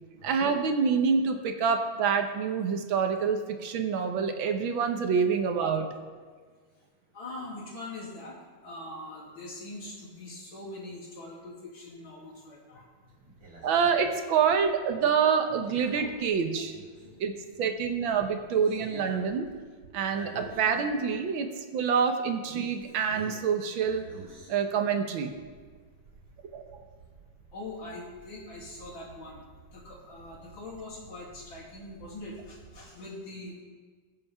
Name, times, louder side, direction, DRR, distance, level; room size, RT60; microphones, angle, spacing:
voice 1, 0.2-5.9 13.6-16.8 17.2-17.3 17.6-19.5 19.9-24.0 24.5-25.3 26.5-26.8, right 6 dB, 85° right, 6 dB, 1.8 m, -27 dB
voice 2, 7.1-8.4 8.6-12.9 17.0-17.2 27.5-29.4 29.7-33.6, left 2 dB, 75° left, -5 dB, 3.6 m, -42 dB
sound 1, 13.1-17.3 17.7-20.9 21.3-21.4 22.5-23.5 23.8-24.8 25.3-32.9, right 2 dB, 60° right, 3.7 m, -49 dB
22.0 x 7.7 x 3.6 m, 1.5 s
omnidirectional pair, 2.2 m